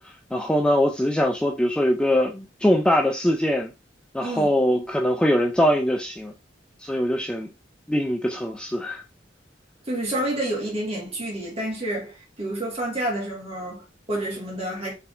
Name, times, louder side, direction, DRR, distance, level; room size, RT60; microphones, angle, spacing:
voice 1, 0.0-3.7 4.1-6.3 6.8-7.5 7.9-9.0, equal, 5° left, 0.3 m, -22 dB
voice 2, 4.2-4.5 9.9-14.9, right 1 dB, 35° right, 1.8 m, -29 dB
4.6 x 3.5 x 2.5 m
head